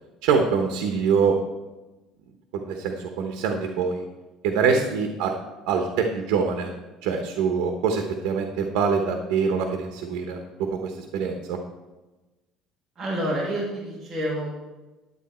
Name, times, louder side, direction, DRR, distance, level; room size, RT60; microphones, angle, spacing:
voice 1, 0.2-1.4 2.5-4.0 4.4-5.3 5.7-6.7 7.0-11.6, right 5 dB, 80° right, 4 dB, 1.1 m, -24 dB
voice 2, 12.9-14.6, right 1 dB, 20° right, -5 dB, 1.5 m, -29 dB
11.0 x 8.4 x 4.4 m, 1.1 s
cardioid pair, 180°, 0 cm